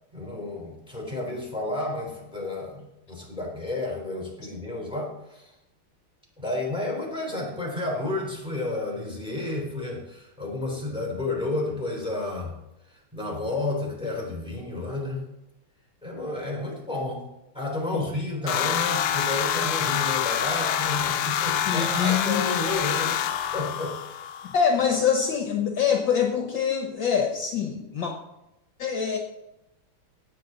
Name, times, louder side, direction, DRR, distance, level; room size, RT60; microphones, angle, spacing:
voice 1, 0.1-5.5 6.4-12.5 13.1-15.2 16.0-17.3 17.5-24.0, left 2 dB, ahead, -2 dB, 3.9 m, -31 dB
sound 1, 18.5-24.6, left 10 dB, 80° left, 1.6 m, -26 dB
voice 2, 21.7-22.5 24.5-28.1 28.8-29.2, left 7 dB, 65° left, 2 dB, 1.9 m, -24 dB
18.0 x 8.4 x 4.1 m, 0.90 s
omnidirectional pair, 2.4 m